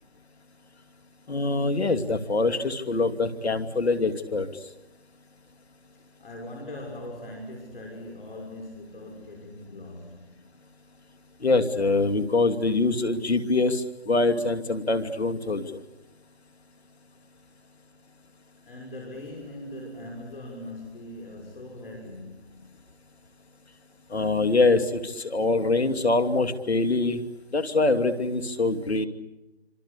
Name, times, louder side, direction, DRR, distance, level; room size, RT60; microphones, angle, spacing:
voice 1, 1.3-4.5 11.4-15.6 24.1-27.2 27.5-29.1, left 3 dB, 75° left, 8 dB, 2.7 m, -24 dB
voice 2, 6.2-10.3 18.7-22.7, left 1 dB, 55° left, 1 dB, 6.5 m, -40 dB
27.0 x 26.0 x 8.4 m, 0.99 s
figure-of-eight pair, 165°, 33 cm